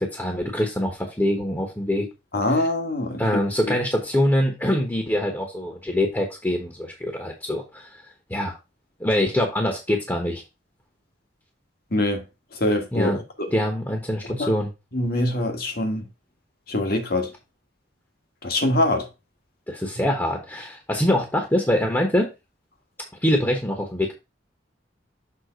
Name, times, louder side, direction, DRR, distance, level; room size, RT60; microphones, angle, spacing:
voice 1, 0.0-2.1 3.2-8.0 8.3-8.5 9.0-10.4 12.9-13.2 13.5-14.7 19.7-22.3 23.2-24.1, left 1 dB, 10° left, 1.1 m, -24 dB
voice 2, 2.3-3.2 3.7-3.8 11.9-12.2 12.5-13.1 13.4-13.5 14.4-14.5 14.9-16.0 16.7-17.3 18.4-19.1, left 1 dB, 55° left, 1.5 m, -23 dB
6.7 x 3.6 x 5.0 m
head